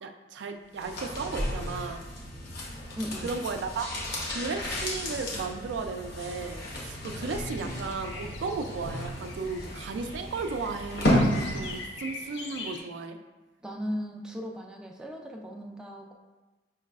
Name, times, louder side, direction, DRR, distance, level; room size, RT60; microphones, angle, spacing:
voice 1, 0.0-2.0 3.2-3.9 4.3-13.2, right 4 dB, 85° right, 6 dB, 0.3 m, -35 dB
sound 1, 0.7-11.9 12.2-12.3, left 1 dB, 60° left, 0.9 m, -32 dB
voice 2, 3.0-3.3 13.6-16.1, equal, 5° right, 0 dB, 0.3 m, -37 dB
sound 2, 7.4-12.8, left 3 dB, 85° left, 0.5 m, -43 dB
4.6 x 3.1 x 2.3 m, 1.2 s
head